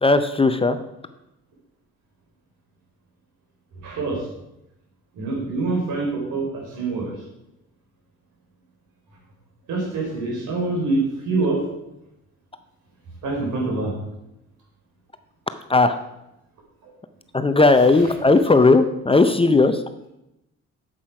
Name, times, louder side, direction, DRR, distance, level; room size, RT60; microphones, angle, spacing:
voice 1, 0.0-0.8 15.7-16.0 17.3-19.8, left 3 dB, 20° left, 9 dB, 0.6 m, -16 dB
voice 2, 3.8-4.2 5.2-7.1 9.7-11.6 13.2-13.9, right 3 dB, 75° right, -1 dB, 4.1 m, -25 dB
8.6 x 7.7 x 4.9 m, 0.89 s
cardioid pair, 90°, 30 cm